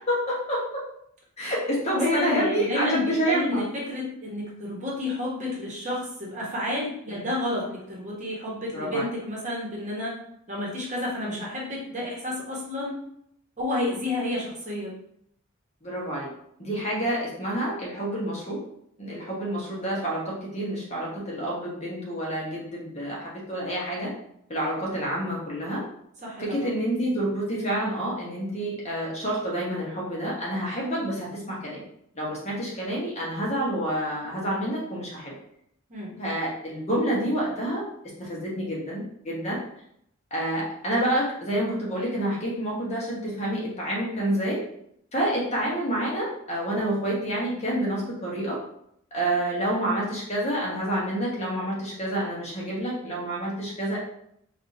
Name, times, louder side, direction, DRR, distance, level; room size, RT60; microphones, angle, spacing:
voice 1, 0.1-0.6 1.4-3.6 7.1-7.2 8.7-9.0 11.3-11.4 15.8-16.3 16.6-18.6 19.0-24.1 24.5-25.8 26.4-31.8 32.1-35.3 36.2-37.8 38.2-39.6 40.3-44.6 45.1-48.6 49.1-54.0, right 1 dB, 30° left, -5 dB, 1.0 m, -28 dB
voice 2, 1.9-10.1 10.5-13.0 13.6-14.9 26.2-26.7 35.9-36.2, left 1 dB, 35° right, -4 dB, 1.1 m, -30 dB
4.7 x 2.4 x 2.7 m, 0.73 s
head